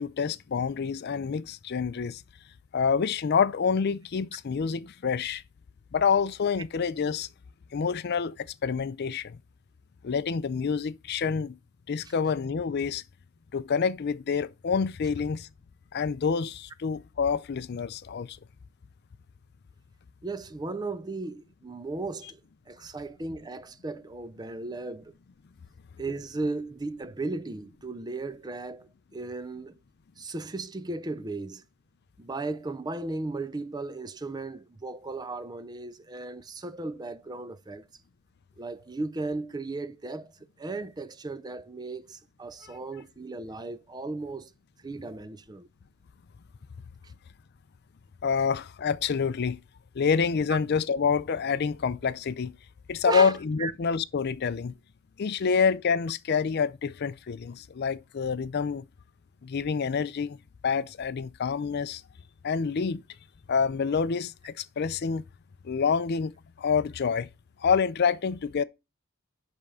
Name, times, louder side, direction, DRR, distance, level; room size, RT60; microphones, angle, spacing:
voice 1, 0.0-2.2 2.7-5.4 5.9-7.3 7.7-9.4 10.0-11.6 11.9-13.0 13.5-15.5 15.9-18.4 48.2-49.6 49.9-52.5 52.9-54.7 55.2-58.9 59.4-60.4 60.6-62.0 62.4-63.0 63.5-65.2 65.6-67.3 67.6-68.6, left 6 dB, 50° left, 0.4 m, -27 dB
voice 2, 20.2-22.4 22.7-25.1 26.0-29.7 30.2-31.6 32.2-37.9 38.6-44.5 44.8-45.7 47.0-47.1 50.5-50.6 53.0-53.3 53.6-53.7, right 3 dB, 20° right, 0.4 m, -36 dB
10.5 x 3.5 x 5.4 m
head